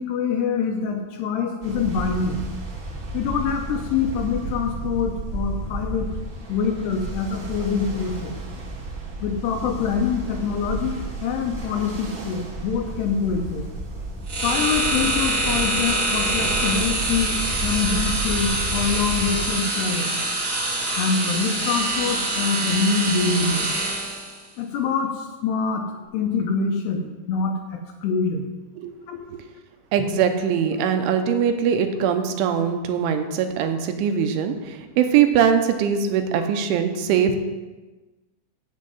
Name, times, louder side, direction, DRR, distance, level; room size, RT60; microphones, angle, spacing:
voice 1, 0.0-2.4 3.1-6.1 6.5-8.4 9.2-13.7 14.4-20.1 20.9-23.7 24.6-28.5 29.1-29.2, left 5 dB, 75° left, 3 dB, 2.6 m, -25 dB
Ocean, 1.6-19.5, right 2 dB, 50° right, 1.4 m, -32 dB
sound 1, 14.3-24.4, right 2 dB, 35° right, 1.4 m, -25 dB
voice 2, 29.9-37.4, right 8 dB, 85° right, 6 dB, 3.2 m, -21 dB
7.6 x 7.4 x 7.7 m, 1.2 s
omnidirectional pair, 5.4 m